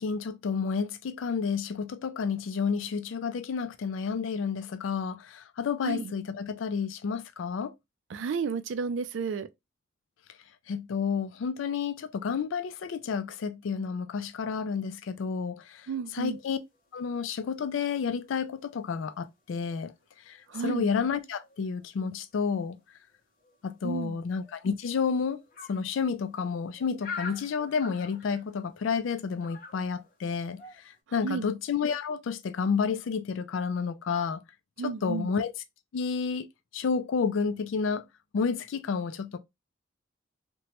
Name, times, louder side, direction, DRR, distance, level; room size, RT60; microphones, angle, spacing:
voice 1, 0.0-7.7 10.7-15.8 16.1-16.6 16.9-19.9 20.3-20.4 20.6-22.8 23.6-25.4 25.7-30.6 31.1-34.4 34.8-35.5 35.9-36.5 36.7-38.0 38.3-39.4, left 5 dB, 80° left, 0.3 m, -30 dB
voice 2, 8.1-9.5 15.9-16.4 20.5-20.9 23.8-24.2 31.2-31.5 34.8-35.3, right 5 dB, 70° right, 0.4 m, -32 dB
sound 1, 16.4-19.3 19.6-22.0 22.6-22.8 23.1-23.2 23.4-31.0, left 4 dB, 45° left, 0.6 m, -47 dB
2.9 x 2.2 x 2.9 m
head